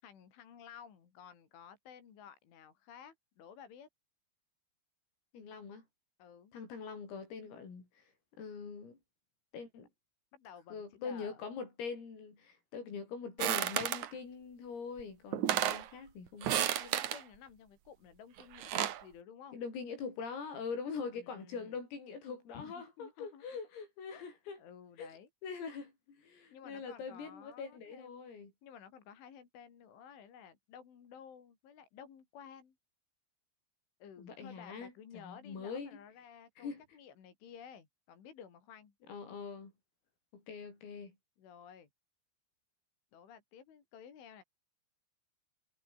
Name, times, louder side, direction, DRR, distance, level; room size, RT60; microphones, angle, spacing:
voice 1, 0.0-3.9 6.2-6.5 10.3-11.4 16.8-19.6 21.1-21.8 22.5-23.4 24.1-25.3 26.5-28.3 28.6-32.7 34.0-38.9 41.4-41.9 43.1-44.4, left 7 dB, 70° left, 6.3 m, -54 dB
voice 2, 5.3-5.8 6.5-7.9 8.4-9.0 9.5-9.9 10.7-16.7 19.5-24.6 25.0-25.1 25.4-28.5 34.2-35.9 36.6-36.8 39.1-39.7 40.3-41.2, left 5 dB, 85° left, 10.0 m, -43 dB
sound 1, 13.4-14.1 15.0-15.1 15.3-15.9 16.4-17.2 18.4-19.0, right 11 dB, 90° right, 1.7 m, -32 dB
omnidirectional pair, 5.9 m